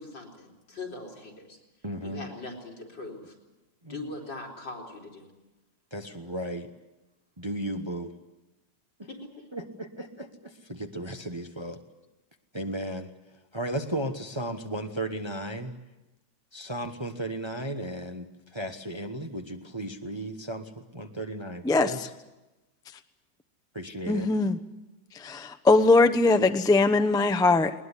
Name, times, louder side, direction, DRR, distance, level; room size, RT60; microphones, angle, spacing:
voice 1, 0.0-1.6 2.0-3.3 3.9-5.3 9.1-9.3, left 2 dB, 85° left, -1 dB, 4.9 m, -41 dB
voice 2, 1.8-2.2 3.8-4.1 5.9-6.7 7.4-8.1 9.0-9.1 9.5-11.8 12.5-15.7 16.5-22.1 23.7-24.3, right 1 dB, 20° right, 5 dB, 1.0 m, -35 dB
voice 3, 24.1-24.6 25.1-27.7, left 3 dB, 5° left, 8 dB, 0.3 m, -21 dB
20.5 x 20.5 x 9.8 m, 1.0 s
omnidirectional pair, 2.0 m